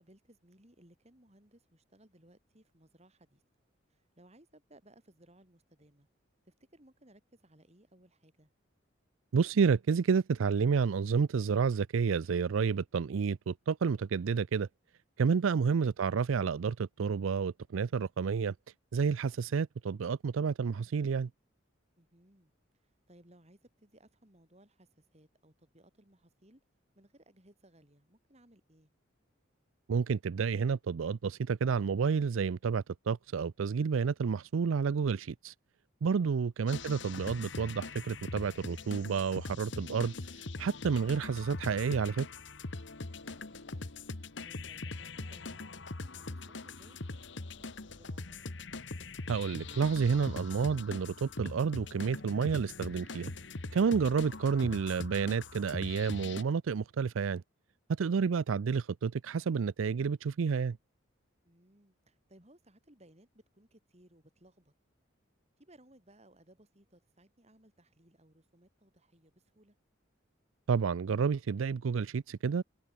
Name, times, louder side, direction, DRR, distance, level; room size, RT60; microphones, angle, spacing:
voice 1, 0.0-3.4 3.9-6.1 6.4-8.5 22.0-22.5 22.8-26.6 27.0-28.9 36.2-36.4 43.0-44.0 44.4-45.8 46.2-48.4 61.4-64.7 65.6-69.8, right 1 dB, 30° right, 4.8 m, -62 dB
voice 2, 9.3-14.7 15.2-18.5 18.9-21.3 29.9-35.5 36.0-42.3 49.3-53.3 53.7-57.4 58.0-60.8 70.7-72.6, right 5 dB, 80° right, 0.4 m, -30 dB
sound 1, 36.7-56.4, left 3 dB, 60° left, 1.4 m, -42 dB
head